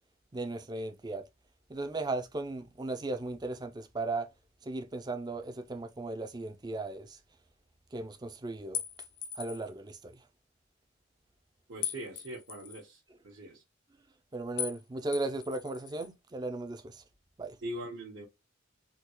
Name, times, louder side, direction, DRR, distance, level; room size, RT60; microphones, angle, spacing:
voice 1, 0.3-1.2 1.7-4.3 4.6-7.2 7.9-8.8 9.4-10.2 14.3-17.0 17.4-17.6, right 2 dB, 20° right, 0.4 m, -36 dB
sound 1, 8.7-9.7 11.8-12.8 14.6-14.8 15.1-16.1, left 9 dB, 40° left, 0.5 m, -39 dB
voice 2, 11.7-13.6 17.6-18.2, right 1 dB, 70° right, 1.0 m, -42 dB
3.6 x 2.3 x 2.9 m
head